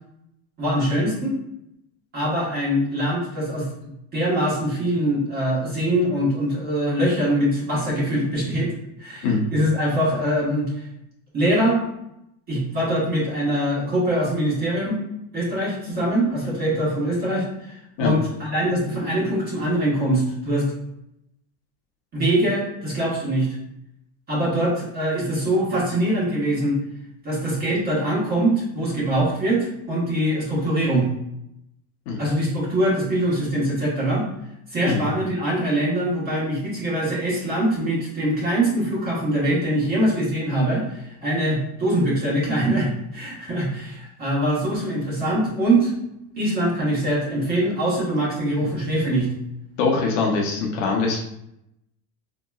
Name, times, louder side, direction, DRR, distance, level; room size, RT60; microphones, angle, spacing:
voice 1, 0.6-1.4 2.1-3.7 4.1-8.7 9.0-10.7 11.3-11.8 12.5-15.0 15.3-17.7 18.0-20.7 22.1-23.5 24.3-26.8 27.2-31.1 32.2-34.2 34.7-45.9 46.4-49.3, right 1 dB, 25° right, -5 dB, 1.2 m, -23 dB
voice 2, 49.8-51.2, left 4 dB, 50° left, -1 dB, 0.7 m, -23 dB
4.4 x 2.9 x 2.3 m, 0.80 s
supercardioid pair, 160°, 40 cm